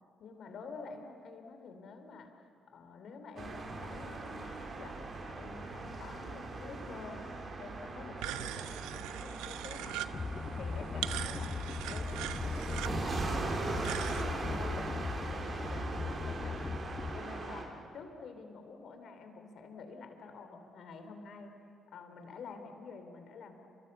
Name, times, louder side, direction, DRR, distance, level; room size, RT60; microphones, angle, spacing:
voice 1, 0.2-7.3 7.6-10.0 10.5-11.6 11.9-16.6 17.1-21.5 21.9-23.6, left 4 dB, 65° left, 6 dB, 3.5 m, -49 dB
sound 1, 3.4-17.6, right 3 dB, 50° right, 4.8 m, -40 dB
sound 2, 8.2-14.2, right 13 dB, 80° right, 0.8 m, -41 dB
sound 3, 10.1-17.2, left 5 dB, 40° left, 0.7 m, -39 dB
29.5 x 25.5 x 7.0 m, 2.5 s
hypercardioid pair, 50°, 0 cm